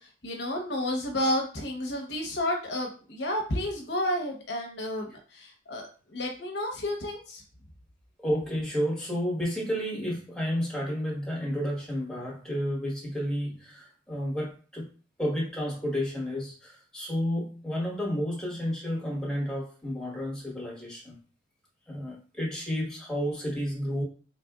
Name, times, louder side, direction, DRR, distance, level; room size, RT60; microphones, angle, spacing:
voice 1, 0.2-7.4, left 1 dB, 75° left, 1 dB, 0.9 m, -31 dB
voice 2, 8.2-14.9 15.2-21.2 21.9-24.0, equal, 5° left, -4 dB, 1.3 m, -31 dB
4.0 x 3.4 x 2.4 m, 0.38 s
head